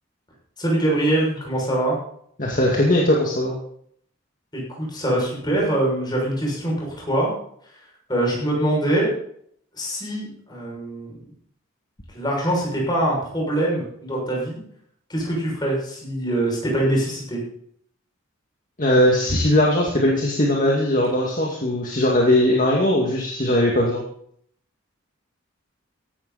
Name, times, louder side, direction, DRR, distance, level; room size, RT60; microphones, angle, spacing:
voice 1, 0.6-2.0 4.5-7.3 8.1-9.1 9.8-11.3 12.1-14.6 15.1-17.4, right 1 dB, 20° left, -3 dB, 6.5 m, -23 dB
voice 2, 2.4-3.6 18.8-24.0, left 1 dB, 40° left, -2 dB, 2.3 m, -19 dB
16.0 x 12.0 x 4.2 m, 0.65 s
head